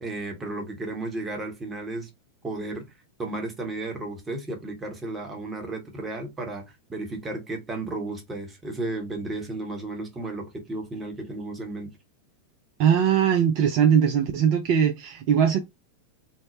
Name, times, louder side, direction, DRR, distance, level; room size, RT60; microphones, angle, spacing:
voice 1, 0.0-2.1 2.4-2.9 3.2-11.9, right 2 dB, 15° right, 0.9 m, -33 dB
voice 2, 12.8-15.6, right 8 dB, 45° right, 0.4 m, -20 dB
2.7 x 2.0 x 3.0 m
figure-of-eight pair, 90°, 0 cm